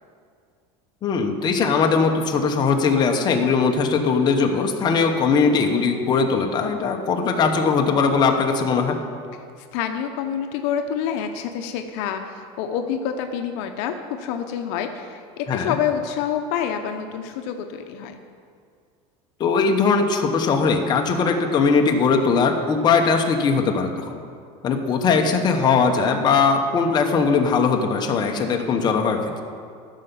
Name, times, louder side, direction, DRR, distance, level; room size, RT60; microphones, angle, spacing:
voice 1, 1.0-9.0 15.5-15.8 19.4-24.2 24.6-29.3, left 5 dB, 30° left, 3 dB, 1.0 m, -20 dB
voice 2, 9.7-18.2, left 8 dB, 65° left, 6 dB, 0.8 m, -27 dB
14.0 x 5.7 x 6.9 m, 2.2 s
cardioid pair, 155°, 15 cm